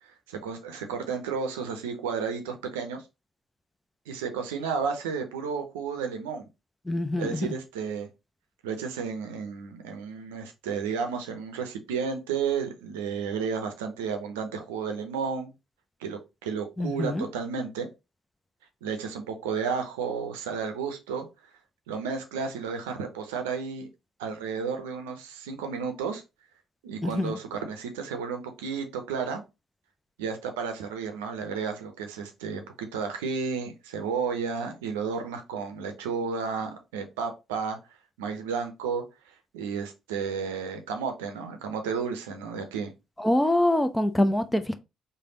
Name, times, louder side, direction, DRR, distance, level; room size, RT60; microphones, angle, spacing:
voice 1, 0.0-3.1 4.1-6.5 7.1-8.1 8.6-15.5 16.0-17.9 18.8-21.3 21.9-23.9 24.2-26.2 26.8-29.4 30.2-37.8 38.2-42.9, right 6 dB, 80° right, 0.6 m, -32 dB
voice 2, 6.9-7.5 16.8-17.2 27.0-27.3 43.2-44.7, left 1 dB, 10° left, 0.5 m, -25 dB
3.3 x 2.2 x 3.8 m
hypercardioid pair, 50°, 0 cm